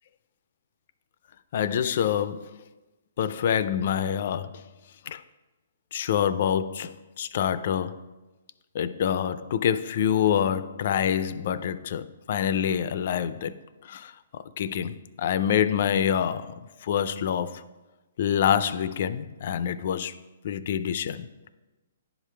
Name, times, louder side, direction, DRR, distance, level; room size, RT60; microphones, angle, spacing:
voice 1, 1.5-2.5 3.2-4.6 5.1-5.2 5.9-8.0 8.7-13.5 13.8-17.6 18.2-20.1 20.4-21.3, left 9 dB, 45° left, 0.3 m, -26 dB
10.5 x 4.9 x 3.3 m
hypercardioid pair, 165°, 0 cm